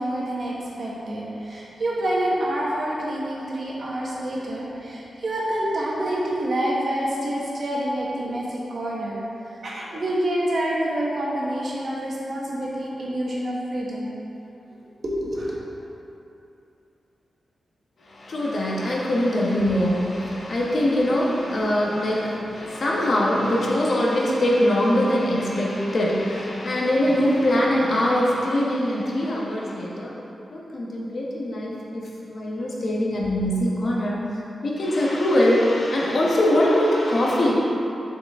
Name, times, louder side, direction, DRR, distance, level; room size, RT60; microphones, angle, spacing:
voice 1, 0.0-9.2 9.6-14.1 14.7-15.6, right 1 dB, 50° right, -5 dB, 1.3 m, -27 dB
voice 2, 18.1-30.1 30.5-32.0 32.3-34.2 34.6-37.5, left 1 dB, 50° left, -4 dB, 1.1 m, -22 dB
7.7 x 4.7 x 3.6 m, 2.8 s
wide cardioid pair, 140°, 0 cm